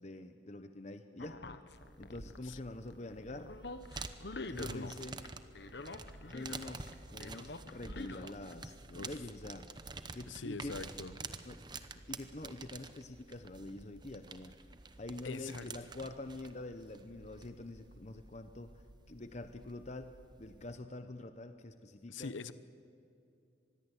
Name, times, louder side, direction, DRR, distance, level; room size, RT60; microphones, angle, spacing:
voice 1, 0.0-1.4 2.0-3.5 4.5-5.2 6.3-9.7 10.1-10.8 11.5-11.6 12.1-14.5 15.0-18.7 19.1-22.3, left 2 dB, 35° left, 8 dB, 0.8 m, -46 dB
sound 1, 1.2-2.6 2.9-5.0 5.2-6.9 7.2-8.5, left 3 dB, 60° left, 1.2 m, -46 dB
sound 2, 1.7-20.8, right 3 dB, 20° right, 0.9 m, -49 dB
voice 2, 10.3-11.2 15.2-15.7 22.1-22.5, left 4 dB, 80° left, 14 dB, 0.9 m, -43 dB
25.0 x 20.5 x 8.1 m, 2.6 s
head